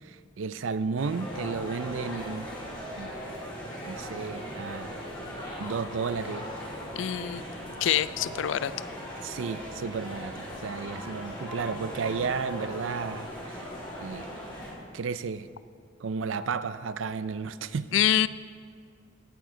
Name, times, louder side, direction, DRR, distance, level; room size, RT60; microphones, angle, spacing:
voice 1, 0.0-2.5 3.0-3.1 3.8-4.9 5.6-6.5 9.2-13.7 14.0-14.3 14.9-15.5 16.0-17.9, right 5 dB, 85° right, 14 dB, 0.4 m, -33 dB
sound 1, 1.0-14.7, equal, 25° left, 2.9 m, -39 dB
voice 2, 7.0-7.4 7.8-8.7 17.9-18.3, left 10 dB, 75° left, 17 dB, 0.3 m, -25 dB
17.0 x 9.3 x 3.8 m, 2.2 s
head